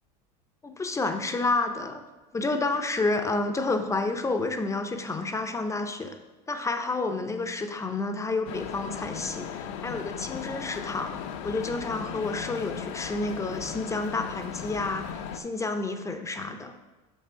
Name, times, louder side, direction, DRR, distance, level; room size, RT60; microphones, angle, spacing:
voice 1, 0.6-2.0 2.3-6.2 6.5-11.2 11.4-16.7, left 3 dB, 15° left, 7 dB, 0.5 m, -30 dB
sound 1, 8.5-15.4, left 8 dB, 70° left, 0.6 m, -37 dB
5.9 x 5.2 x 4.6 m, 1.2 s
supercardioid pair, 105°, 19 cm